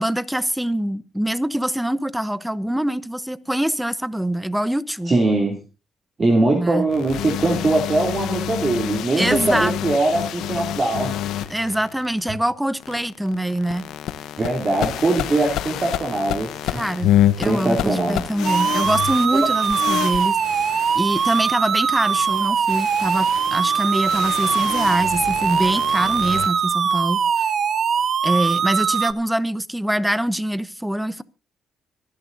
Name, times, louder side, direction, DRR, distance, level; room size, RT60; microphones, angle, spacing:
voice 1, 0.0-5.2 6.5-6.9 9.2-9.7 11.5-13.9 16.7-20.7 20.9-27.5 28.2-31.2, right 1 dB, 5° right, 0.9 m, -24 dB
voice 2, 5.1-5.6 6.2-11.1 14.4-16.7 17.4-18.2 19.3-19.5, right 2 dB, 35° right, 2.9 m, -21 dB
sound 1, 6.9-12.2 12.8-26.5, left 12 dB, 85° left, 0.8 m, -28 dB
sound 2, 18.4-29.1, right 7 dB, 50° right, 0.9 m, -21 dB
24.5 x 11.0 x 2.7 m
cardioid pair, 90°, 0 cm